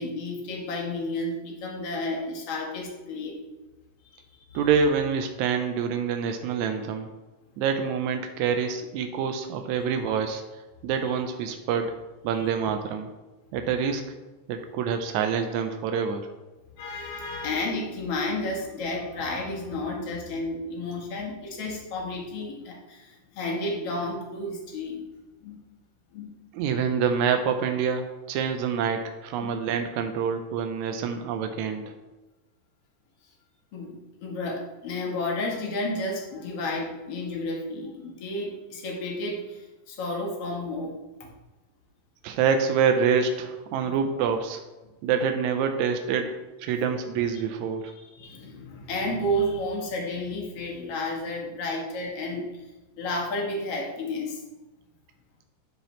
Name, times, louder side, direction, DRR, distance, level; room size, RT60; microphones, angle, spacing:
voice 1, 0.0-3.4 4.1-4.2 4.5-4.6 12.3-12.5 16.8-25.0 25.4-25.6 26.1-26.3 29.4-29.6 33.7-41.3 43.8-43.9 47.9-52.6 53.0-54.4, left 1 dB, 55° left, -1 dB, 1.9 m, -32 dB
voice 2, 4.5-7.1 7.6-10.4 10.8-11.9 12.2-13.1 13.5-14.0 14.5-16.3 26.5-31.9 42.2-44.6 45.0-47.9, right 6 dB, 90° right, 6 dB, 1.6 m, -26 dB
11.5 x 4.9 x 3.1 m, 1.1 s
omnidirectional pair, 4.0 m